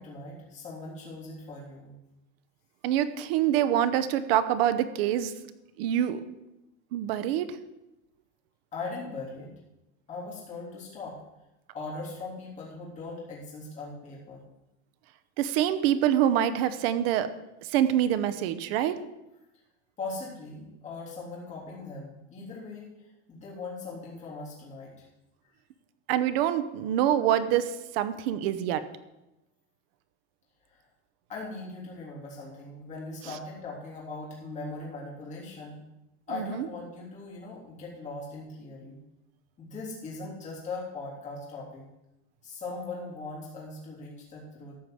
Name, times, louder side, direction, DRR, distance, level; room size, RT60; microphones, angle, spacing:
voice 1, 0.0-1.9 8.7-9.5 10.1-11.2 11.7-14.4 20.0-25.1 25.4-25.5 30.7-30.9 31.3-35.8 36.3-39.0 39.6-41.8 42.4-44.8, left 3 dB, 20° left, -5 dB, 3.4 m, -40 dB
voice 2, 2.8-5.3 5.8-6.2 6.9-7.5 15.4-17.3 17.6-18.9 26.1-28.8 36.3-36.7, right 11 dB, 55° right, 12 dB, 0.9 m, -25 dB
13.5 x 5.1 x 7.7 m, 0.94 s
supercardioid pair, 180°, 36 cm